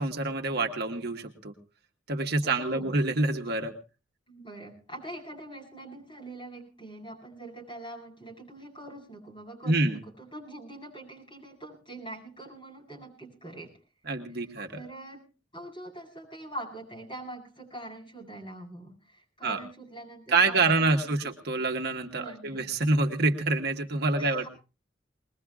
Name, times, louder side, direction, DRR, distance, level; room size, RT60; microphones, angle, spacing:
voice 1, 0.0-1.5 2.1-3.7 9.7-10.0 14.1-14.7 19.4-19.6 20.3-24.5, right 3 dB, 55° right, 4 dB, 1.4 m, -26 dB
voice 2, 2.4-3.0 4.3-13.8 14.3-15.3 15.5-21.3 22.2-22.7 24.2-24.5, right 1 dB, 25° left, -1 dB, 7.8 m, -44 dB
21.5 x 21.5 x 2.4 m, 0.34 s
head